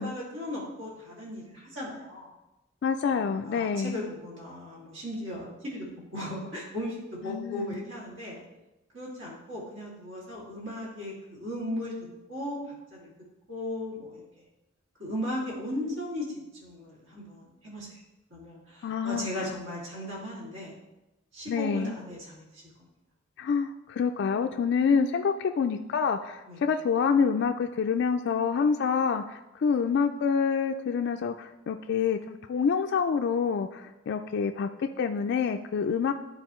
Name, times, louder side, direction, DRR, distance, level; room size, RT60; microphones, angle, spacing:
voice 1, 0.0-2.3 3.1-5.9 6.1-8.4 8.9-11.9 12.3-12.6 12.9-13.1 13.5-14.2 15.0-18.0 18.3-20.8 21.3-22.6 26.5-26.6, left 1 dB, 70° right, -4 dB, 2.5 m, -37 dB
voice 2, 2.8-4.0 7.3-7.8 18.8-19.3 21.5-22.0 23.4-36.1, left 6 dB, 60° left, 5 dB, 0.3 m, -27 dB
10.5 x 4.1 x 3.1 m, 0.96 s
head